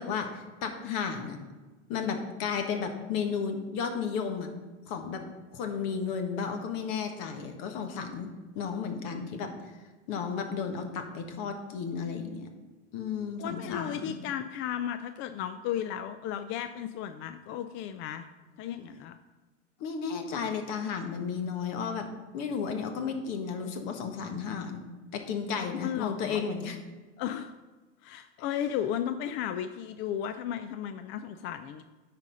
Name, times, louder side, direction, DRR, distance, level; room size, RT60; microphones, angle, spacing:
voice 1, 0.0-1.4 1.9-4.5 4.9-5.2 5.5-8.3 8.5-9.5 10.1-12.5 12.9-14.2 19.8-22.1 22.3-24.8 25.1-26.8, left 6 dB, 55° left, 5 dB, 1.5 m, -33 dB
voice 2, 13.4-18.3 18.6-19.2 25.8-26.5 27.2-27.5 28.0-31.8, left 10 dB, 35° left, 10 dB, 0.4 m, -34 dB
9.6 x 4.2 x 5.4 m, 1.3 s
hypercardioid pair, 115°, 36 cm